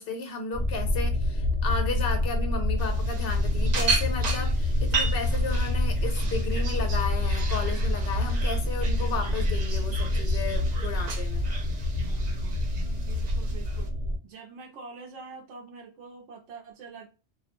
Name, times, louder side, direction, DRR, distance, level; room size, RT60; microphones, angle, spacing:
voice 1, 0.0-11.5, left 4 dB, 60° left, 0.8 m, -34 dB
sound 1, 0.5-14.2, left 1 dB, 20° left, 0.8 m, -27 dB
sound 2, 2.8-13.9, right 4 dB, 55° right, 0.4 m, -36 dB
voice 2, 12.9-13.9 14.2-17.1, right 4 dB, 75° right, 0.9 m, -45 dB
2.5 x 2.0 x 2.8 m
omnidirectional pair, 1.2 m